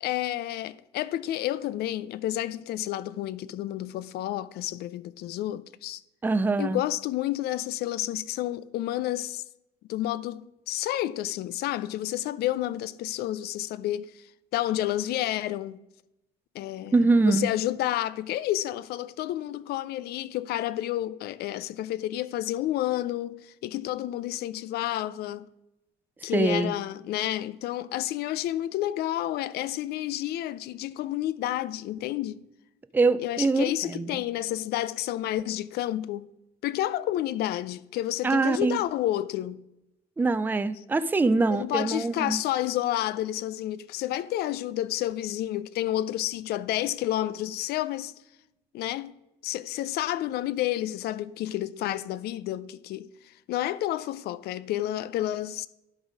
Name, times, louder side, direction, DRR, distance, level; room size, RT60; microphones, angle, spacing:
voice 1, 0.0-6.0 6.6-9.4 9.9-14.2 14.5-15.8 16.5-16.9 17.2-25.5 26.2-32.4 33.2-36.3 36.6-39.6 41.5-48.1 48.7-49.1 49.4-55.7, left 14 dB, 70° left, 0.4 m, -30 dB
voice 2, 6.2-6.8 16.9-17.5 26.3-26.7 32.9-34.2 38.2-38.8 40.2-42.4, right 3 dB, 10° right, 0.4 m, -24 dB
11.0 x 4.0 x 5.1 m
cardioid pair, 110°, 17 cm